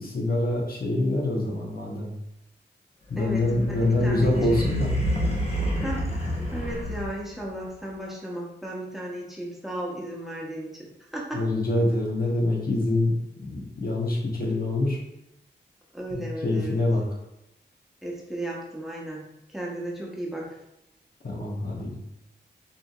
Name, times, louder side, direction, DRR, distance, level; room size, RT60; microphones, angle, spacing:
voice 1, 0.0-2.1 3.1-4.9 11.3-13.1 13.4-15.0 16.1-17.0 21.2-22.0, left 2 dB, 55° left, -3 dB, 1.2 m, -25 dB
sound 1, 3.1-7.4, equal, 35° left, 1.3 m, -28 dB
voice 2, 3.2-4.7 5.8-11.5 15.9-16.8 18.0-20.6, right 1 dB, ahead, -3 dB, 1.2 m, -35 dB
5.0 x 3.3 x 2.4 m, 0.84 s
cardioid pair, 60°, 18 cm